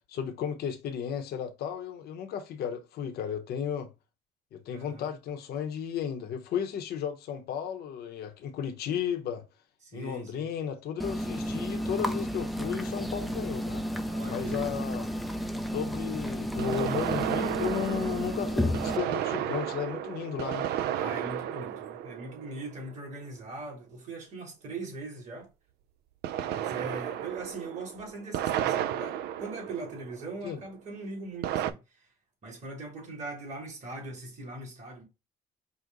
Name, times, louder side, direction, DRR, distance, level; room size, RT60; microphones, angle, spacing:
voice 1, 0.1-3.9 4.5-9.4 9.9-13.8 14.3-15.1 15.7-20.7 30.4-30.6, left 8 dB, 70° left, 0.8 m, -34 dB
voice 2, 4.7-5.1 9.8-10.5 14.1-14.8 20.9-25.5 26.4-32.1 32.4-35.0, right 3 dB, 45° right, 2.5 m, -41 dB
sound 1, 11.0-19.0, equal, ahead, 0.3 m, -32 dB
sound 2, 12.7-12.8 16.6-23.1 26.2-30.5 31.4-31.7, right 11 dB, 75° right, 0.4 m, -33 dB
5.0 x 2.1 x 3.9 m
cardioid pair, 110°, 17 cm